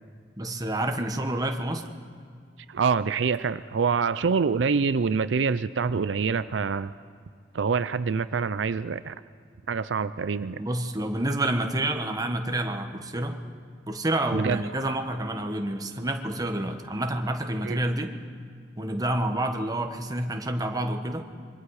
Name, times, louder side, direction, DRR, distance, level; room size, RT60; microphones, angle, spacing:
voice 1, 0.4-1.8 10.6-13.4 13.9-18.1 18.8-21.3, right 1 dB, 20° right, 5 dB, 1.3 m, -28 dB
voice 2, 2.7-6.9 7.5-9.2 9.7-10.6 14.3-14.6 17.6-17.8, right 5 dB, 85° right, 14 dB, 0.5 m, -26 dB
26.0 x 23.0 x 4.9 m, 2.2 s
head